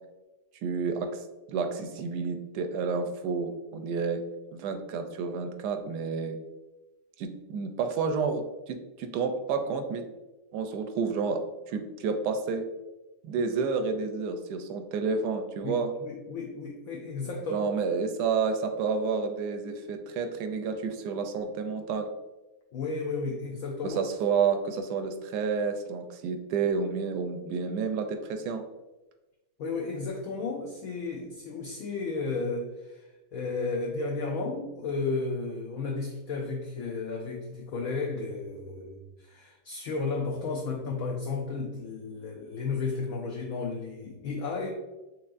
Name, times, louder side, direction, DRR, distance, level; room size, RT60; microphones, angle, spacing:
voice 1, 0.6-4.2 4.5-6.3 7.2-10.0 10.5-12.6 13.2-15.9 17.5-22.1 23.8-28.6, right 5 dB, 75° right, 7 dB, 1.1 m, -30 dB
voice 2, 15.6-17.7 22.7-24.0 29.6-44.7, left 4 dB, 70° left, -1 dB, 0.8 m, -33 dB
6.1 x 3.0 x 2.5 m, 1.1 s
omnidirectional pair, 1.9 m